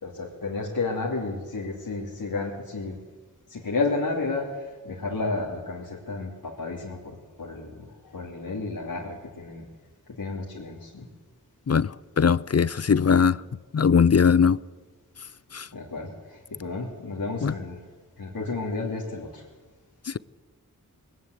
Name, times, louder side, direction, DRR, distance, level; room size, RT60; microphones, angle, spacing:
voice 1, 0.0-3.0 3.5-9.7 10.2-11.1 15.7-17.8 18.2-19.4, left 3 dB, 85° left, -3 dB, 2.9 m, -32 dB
voice 2, 11.7-13.4 13.7-14.6 15.5-15.7 17.4-17.5 20.1-20.2, left 6 dB, 45° left, 20 dB, 0.6 m, -20 dB
20.5 x 18.5 x 8.1 m, 1.3 s
wide cardioid pair, 55°, 35 cm